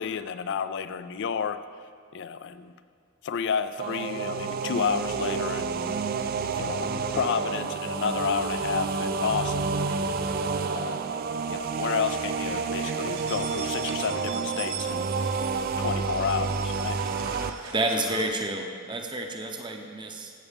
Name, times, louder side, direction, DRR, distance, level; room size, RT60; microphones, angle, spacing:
voice 1, 0.0-1.6 2.1-2.7 3.2-5.9 6.5-10.1 10.6-11.1 11.5-15.1 15.8-17.0, left 6 dB, 55° left, 12 dB, 0.4 m, -31 dB
sound 1, 3.8-17.5, right 5 dB, 40° right, 0.3 m, -29 dB
sound 2, 10.5-11.3 11.6-18.3, right 5 dB, 65° right, 1.1 m, -41 dB
voice 2, 17.7-20.3, right 2 dB, 20° right, 3 dB, 0.7 m, -30 dB
14.0 x 8.2 x 3.5 m, 2.2 s
head